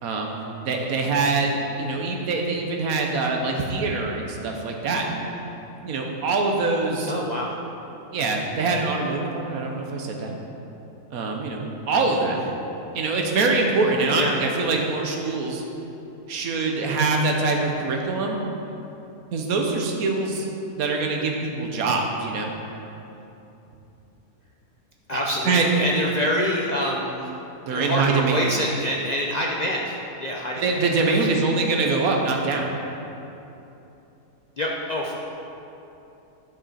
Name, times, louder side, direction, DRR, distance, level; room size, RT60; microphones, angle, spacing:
voice 1, 0.0-5.2 5.8-7.1 8.1-10.4 11.1-12.4 12.9-15.6 16.3-18.4 19.3-20.5 20.7-22.5 25.1-25.2 25.4-25.7 27.6-28.6 30.5-32.7, right 3 dB, 65° right, 1 dB, 1.4 m, -24 dB
voice 2, 7.1-7.6 12.4-12.5 14.2-14.4 25.1-27.3 27.7-31.1 34.6-35.2, left 1 dB, 60° left, -3 dB, 0.4 m, -26 dB
10.5 x 6.1 x 4.2 m, 2.9 s
omnidirectional pair, 1.7 m